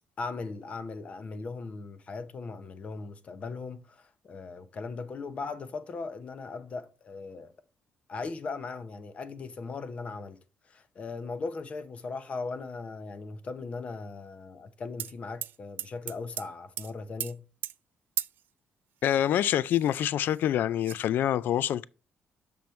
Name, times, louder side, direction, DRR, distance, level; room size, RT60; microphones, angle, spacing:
voice 1, 0.2-7.5 8.1-10.4 10.6-17.4, left 4 dB, 35° left, 0.7 m, -38 dB
sound 1, 15.0-15.1 15.4-16.5 16.8-16.9 17.2-17.3 17.6-17.7 18.2-18.4 19.3-19.4 19.7-20.4 20.8-21.0, right 11 dB, 65° right, 0.3 m, -35 dB
voice 2, 19.0-21.8, left 11 dB, 65° left, 0.3 m, -26 dB
7.0 x 6.0 x 3.2 m
cardioid pair, 150°, 4 cm